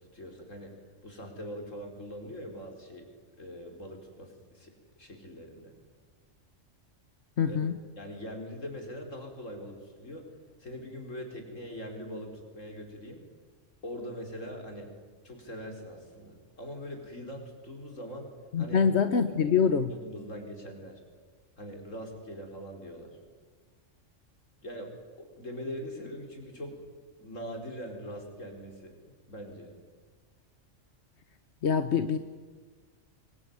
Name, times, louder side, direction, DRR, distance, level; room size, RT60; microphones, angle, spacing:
voice 1, 0.0-0.8 1.0-3.1 3.4-4.7 5.0-5.7 7.5-7.6 8.0-10.3 10.6-13.2 13.8-14.9 15.2-18.3 18.6-18.8 19.9-21.0 21.6-23.2 24.6-24.9 25.2-26.8 27.2-29.0 29.3-29.7, equal, 80° left, 3 dB, 5.2 m, -42 dB
voice 2, 7.4-7.7 18.5-19.9 31.6-32.2, left 6 dB, 60° left, 10 dB, 1.3 m, -25 dB
25.0 x 22.5 x 9.6 m, 1.4 s
omnidirectional pair, 1.3 m